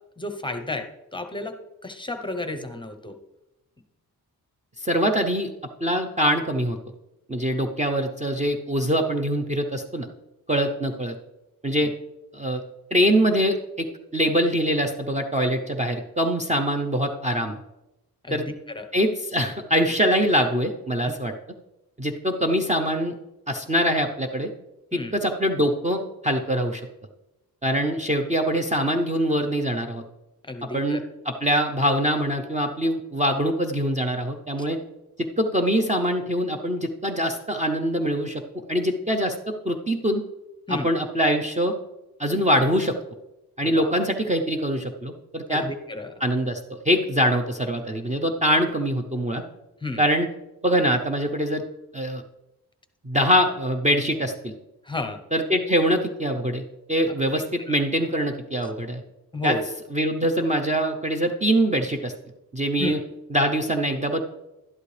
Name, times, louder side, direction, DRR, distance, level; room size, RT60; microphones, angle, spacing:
voice 1, 0.2-1.6 1.8-3.2 18.2-18.9 21.1-21.2 24.9-25.1 30.4-31.0 40.7-40.9 43.6-44.0 45.5-46.1 49.8-50.0 54.8-55.2 59.3-59.7 62.8-63.0, left 2 dB, 15° left, 7 dB, 0.8 m, -32 dB
voice 2, 4.8-5.5 5.8-6.8 7.3-10.1 10.5-11.2 11.6-11.9 12.3-12.6 12.9-13.9 14.1-17.6 18.3-18.4 18.9-21.3 22.0-23.1 23.5-24.5 24.9-26.8 27.6-30.0 30.6-34.8 35.2-38.4 38.7-40.2 40.7-41.7 42.2-42.9 43.6-45.6 46.2-49.4 50.0-50.3 50.6-51.6 51.9-52.2 53.0-54.5 55.3-59.0 59.4-59.6 59.9-62.1 62.5-63.0 63.3-64.2, equal, 20° right, 2 dB, 0.6 m, -23 dB
12.0 x 11.0 x 3.3 m, 0.96 s
wide cardioid pair, 150°, 38 cm